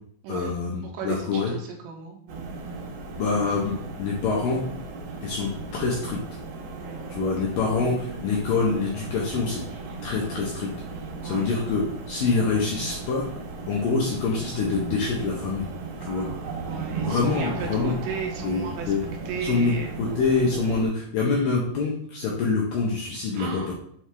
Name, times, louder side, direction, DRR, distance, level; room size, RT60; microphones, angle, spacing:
voice 1, 0.3-1.5 3.2-4.6 5.2-6.2 7.1-9.6 10.0-10.7 11.2-11.8 12.1-13.3 13.7-15.7 16.0-16.3 17.0-18.0 18.4-19.0 19.4-23.7, left 4 dB, 85° left, -3 dB, 1.9 m, -25 dB
voice 2, 0.8-2.5 6.8-7.1 11.2-11.5 16.1-18.9 19.3-19.9 23.4-23.7, right 6 dB, 80° right, 1 dB, 2.8 m, -36 dB
sound 1, 2.3-20.9, right 3 dB, 65° right, 2.9 m, -36 dB
8.1 x 4.7 x 3.4 m, 0.66 s
omnidirectional pair, 5.5 m